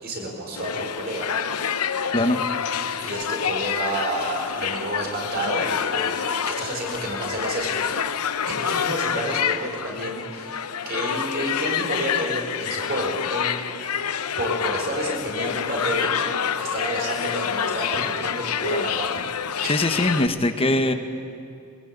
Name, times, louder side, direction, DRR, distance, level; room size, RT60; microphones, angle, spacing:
voice 1, 0.0-1.3 3.0-7.8 8.4-10.5 10.8-13.6 14.4-16.1 16.6-19.2 19.6-20.0, right 1 dB, 45° right, 1 dB, 4.6 m, -30 dB
sound 1, 0.6-20.3, left 7 dB, 85° left, 0.8 m, -27 dB
voice 2, 2.1-2.4 19.7-20.9, left 1 dB, 25° left, 8 dB, 1.2 m, -21 dB
22.5 x 20.0 x 8.8 m, 2.4 s
head